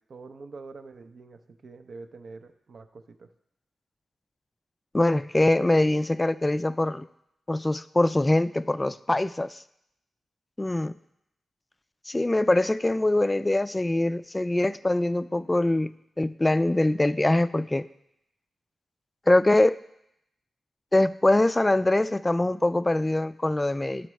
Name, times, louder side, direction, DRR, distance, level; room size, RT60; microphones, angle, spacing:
voice 1, 0.0-3.3, right 3 dB, 70° right, 7 dB, 0.6 m, -45 dB
voice 2, 4.9-7.1 7.5-9.6 10.6-11.0 12.1-15.9 16.2-17.9 19.3-19.8 20.9-24.1, left 1 dB, 20° left, 15 dB, 0.3 m, -23 dB
11.0 x 4.4 x 3.1 m, 0.79 s
cardioid pair, 50°, 0 cm